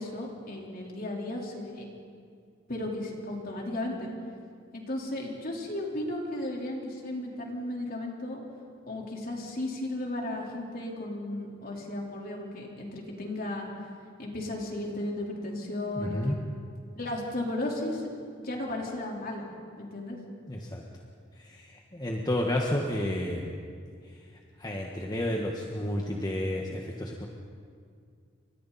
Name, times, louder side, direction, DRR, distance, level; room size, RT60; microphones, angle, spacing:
voice 1, 0.0-1.9 2.7-4.1 4.7-8.4 8.9-13.7 14.2-16.4 17.0-18.0 18.4-19.5 19.8-20.2, left 1 dB, 50° left, -1 dB, 4.2 m, -35 dB
voice 2, 16.0-16.4 20.5-20.8 21.4-23.5 24.6-27.3, left 1 dB, 20° left, 0 dB, 1.5 m, -31 dB
29.5 x 25.0 x 4.3 m, 2.2 s
head